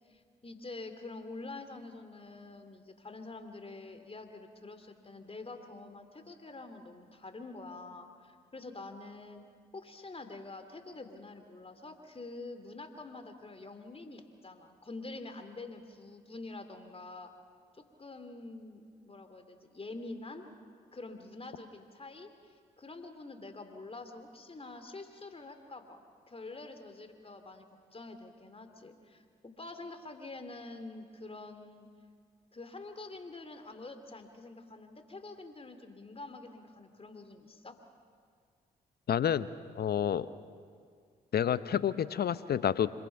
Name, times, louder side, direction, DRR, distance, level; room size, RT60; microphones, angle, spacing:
voice 1, 0.0-9.4 9.7-17.3 17.7-20.5 20.9-31.9 32.5-37.8, left 3 dB, 30° left, 8 dB, 2.8 m, -46 dB
voice 2, 39.1-39.5 39.7-40.3 41.3-42.9, left 9 dB, 55° left, 15 dB, 0.8 m, -29 dB
26.5 x 22.0 x 5.8 m, 2.1 s
hypercardioid pair, 45°, 20 cm